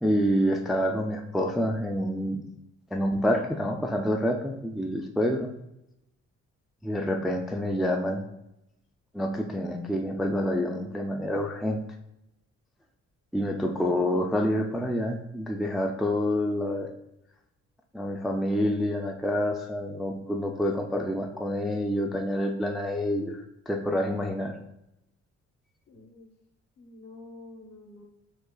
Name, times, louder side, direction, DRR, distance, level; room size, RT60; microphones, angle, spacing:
voice 1, 0.0-2.4 2.9-5.5 6.8-8.2 9.1-11.8 13.3-16.9 17.9-24.6, equal, ahead, 2 dB, 0.3 m, -27 dB
voice 2, 25.9-26.3 26.8-28.0, left 2 dB, 55° left, 2 dB, 1.0 m, -48 dB
6.4 x 2.4 x 2.2 m, 0.85 s
cardioid pair, 90°, 30 cm